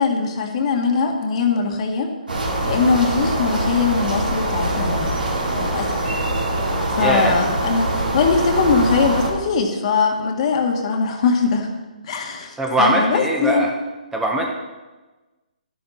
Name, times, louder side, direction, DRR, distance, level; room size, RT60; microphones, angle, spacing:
voice 1, 0.0-2.1 2.6-5.1 5.5-6.0 6.9-11.7 12.0-13.7, left 5 dB, 45° left, 3 dB, 1.9 m, -21 dB
sound 1, 2.3-9.3, right 1 dB, 80° right, 3.7 m, -23 dB
voice 2, 7.0-7.3 12.6-13.7 14.1-14.5, right 2 dB, 5° right, 0 dB, 1.5 m, -20 dB
12.0 x 11.5 x 4.3 m, 1.2 s
hypercardioid pair, 140°, 5 cm